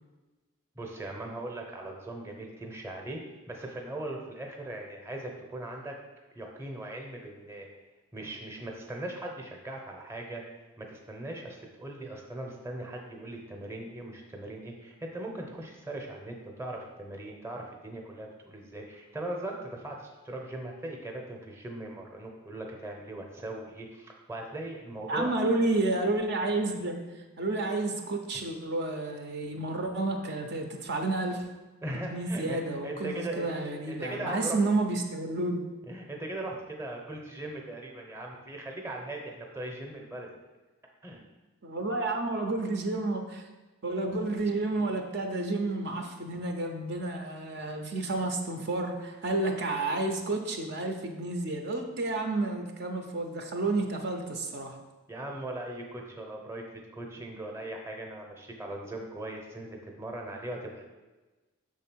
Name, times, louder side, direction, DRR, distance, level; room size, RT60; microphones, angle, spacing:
voice 1, 0.7-3.2 3.5-5.9 6.3-7.7 8.1-10.4 10.8-25.3 28.3-28.4 31.8-32.6 32.8-34.6 35.9-40.3 41.0-41.2 55.1-60.8, right 1 dB, 10° right, 1 dB, 0.8 m, -39 dB
voice 2, 25.1-27.0 27.4-31.4 32.1-35.6 41.6-43.4 43.8-54.7, right 2 dB, 55° right, 3 dB, 0.7 m, -30 dB
6.4 x 3.6 x 6.1 m, 1.2 s
head